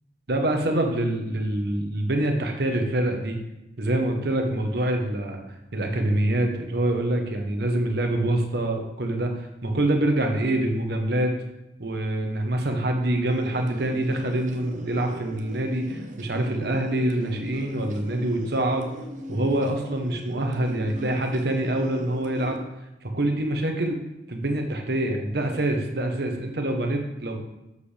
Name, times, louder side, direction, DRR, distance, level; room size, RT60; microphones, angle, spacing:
voice 1, 0.3-3.4 3.8-11.3 11.8-18.9 19.3-22.6 23.0-24.0 24.3-27.4, right 1 dB, 60° right, 3 dB, 1.1 m, -25 dB
sound 1, 13.3-22.6, equal, 45° right, 0.7 m, -40 dB
7.7 x 6.6 x 3.4 m, 0.94 s
head